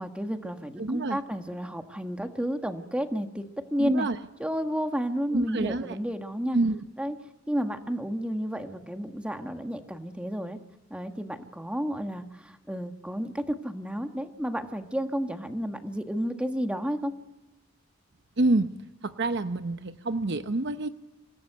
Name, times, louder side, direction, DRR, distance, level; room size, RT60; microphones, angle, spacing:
voice 1, 0.0-3.5 3.7-4.1 4.4-6.6 7.0-7.1 7.5-10.6 10.9-17.1, equal, 5° right, 6 dB, 1.5 m, -31 dB
voice 2, 0.8-1.2 3.8-4.2 5.3-6.0 6.5-6.8 18.4-18.7 19.0-20.9, right 2 dB, 60° right, 9 dB, 0.9 m, -27 dB
27.0 x 19.0 x 8.1 m, 1.0 s
head